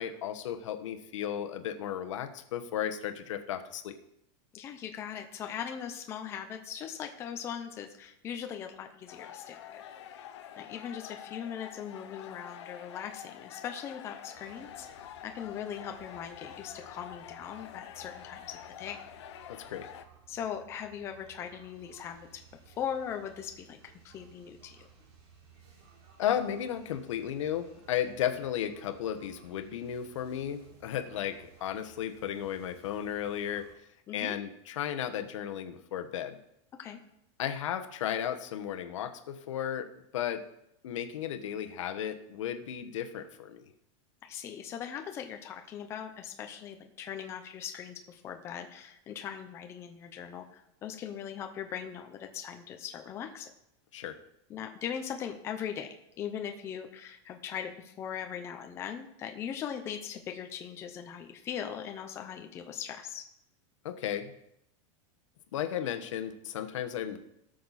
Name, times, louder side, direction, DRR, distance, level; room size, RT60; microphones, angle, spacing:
voice 1, 0.0-3.9 19.5-19.9 26.2-33.6 34.1-36.4 37.4-40.5 40.8-43.7 53.9-54.2 63.8-64.3 65.5-67.2, left 10 dB, 80° left, 7 dB, 1.3 m, -34 dB
voice 2, 4.5-9.8 10.6-19.0 20.3-22.4 22.7-23.8 24.0-24.9 34.1-34.4 36.8-37.0 44.2-53.5 54.5-55.9 56.2-63.2, left 8 dB, 15° left, 5 dB, 0.6 m, -40 dB
sound 1, 9.1-20.0, left 10 dB, 65° left, 0.9 m, -47 dB
sound 2, 14.3-33.7, right 6 dB, 60° right, 3.5 m, -58 dB
17.5 x 6.6 x 4.2 m, 0.80 s
supercardioid pair, 180°, 16 cm